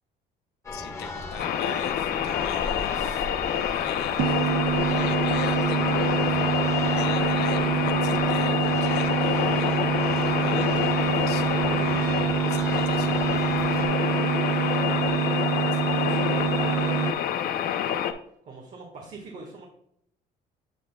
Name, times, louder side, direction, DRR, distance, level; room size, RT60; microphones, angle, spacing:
Church bell, 0.6-13.9, left 2 dB, 15° left, 1.4 m, -37 dB
voice 1, 0.7-3.2 3.7-4.4 4.8-6.4 6.9-10.9 11.3-11.5 12.5-13.2 15.7-15.8, left 9 dB, 80° left, 7 dB, 0.9 m, -40 dB
sound 1, 1.4-18.1, left 9 dB, 60° left, 0.6 m, -27 dB
sound 2, 4.2-17.1, right 7 dB, 85° right, 0.6 m, -26 dB
voice 2, 10.3-10.8 11.6-12.2 15.5-17.2 18.4-19.7, right 3 dB, 50° right, -1 dB, 1.6 m, -41 dB
8.5 x 6.2 x 2.3 m, 0.72 s
cardioid pair, 110°, 17 cm